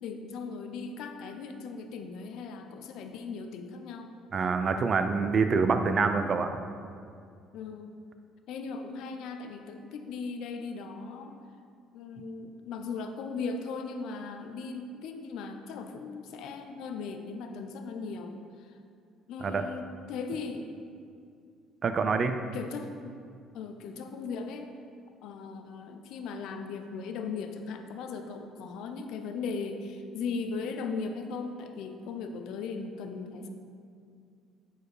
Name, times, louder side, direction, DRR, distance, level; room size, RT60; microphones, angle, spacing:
voice 1, 0.0-4.1 7.5-8.0 8.5-11.4 11.9-18.8 19.3-20.7 22.5-23.2 23.5-24.7 25.2-33.5, left 4 dB, 70° left, 6 dB, 0.7 m, -38 dB
voice 2, 4.3-6.5 19.4-19.6 21.8-22.4, right 4 dB, 40° right, 8 dB, 0.5 m, -26 dB
8.9 x 4.5 x 4.9 m, 2.3 s
cardioid pair, 125°, 0 cm